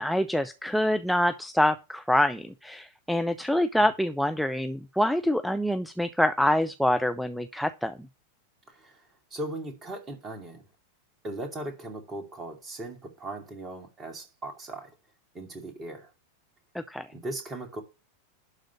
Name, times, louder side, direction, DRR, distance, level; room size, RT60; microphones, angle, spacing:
voice 1, 0.0-7.9 16.7-17.1, left 1 dB, ahead, 0.6 m, -26 dB
voice 2, 8.7-9.0 9.3-10.6 11.2-14.9 15.3-16.1 17.1-17.8, right 1 dB, 20° right, 2.7 m, -38 dB
11.5 x 3.9 x 7.2 m
figure-of-eight pair, 90°, 0 cm